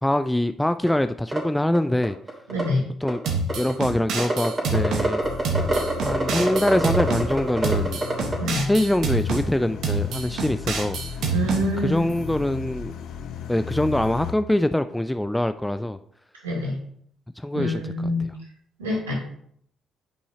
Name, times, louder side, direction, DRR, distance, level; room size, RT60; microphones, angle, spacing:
voice 1, 0.0-2.2 3.0-3.2 3.6-5.2 6.0-8.0 8.7-11.2 11.8-12.9 13.5-16.0 17.4-17.8 18.2-18.3, left 1 dB, 10° left, 11 dB, 0.4 m, -24 dB
sound 1, 0.9-1.0 1.3-1.4 1.7-1.8 2.0-2.6 3.1-3.7 4.2-8.4, right 2 dB, 25° right, 3.0 m, -24 dB
voice 2, 2.5-2.8 8.4-8.7 11.3-12.1 16.4-16.8 17.5-18.2 18.8-19.1, equal, 85° right, -3 dB, 2.4 m, -25 dB
sound 2, 3.3-5.1 5.4-7.3 7.6-9.4 9.8-11.6, right 3 dB, 65° right, 1.2 m, -26 dB
sound 3, 5.2-14.3, left 7 dB, 65° left, 0.6 m, -36 dB
9.6 x 5.4 x 2.8 m, 0.65 s
hypercardioid pair, 45°, 0 cm